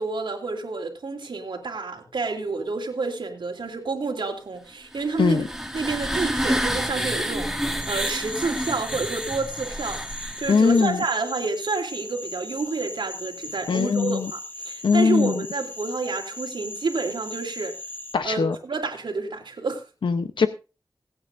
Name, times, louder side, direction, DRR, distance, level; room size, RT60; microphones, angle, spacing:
voice 1, 0.0-5.4 5.7-17.7 18.2-19.8, right 4 dB, 80° right, 2 dB, 3.1 m, -29 dB
sound 1, 4.9-10.7, equal, 5° right, 1.8 m, -29 dB
sound 2, 7.8-18.2, left 2 dB, 25° left, 1.2 m, -38 dB
voice 2, 10.5-11.0 13.7-14.3 14.8-15.4 18.1-18.6 20.0-20.5, left 5 dB, 85° left, 10 dB, 0.8 m, -21 dB
26.0 x 8.9 x 2.6 m, 0.30 s
wide cardioid pair, 100°, 8 cm